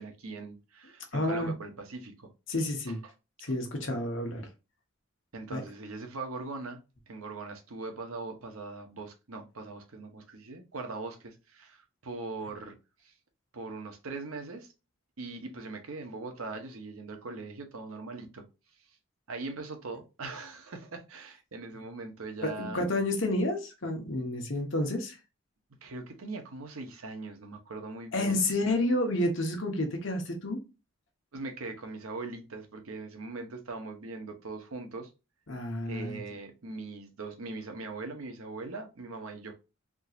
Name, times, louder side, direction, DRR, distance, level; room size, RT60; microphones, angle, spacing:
voice 1, 0.0-2.3 2.9-3.0 3.4-3.5 5.3-6.8 7.1-12.7 13.0-13.1 13.5-14.7 15.2-18.4 19.3-22.8 25.8-28.5 31.3-35.1 35.8-39.5, right 3 dB, 85° right, 0.9 m, -41 dB
voice 2, 1.1-1.5 2.5-3.0 3.4-4.5 5.5-5.6 22.4-25.2 28.1-30.6 35.5-36.2, left 1 dB, 65° left, 1.1 m, -30 dB
3.7 x 2.8 x 2.4 m
head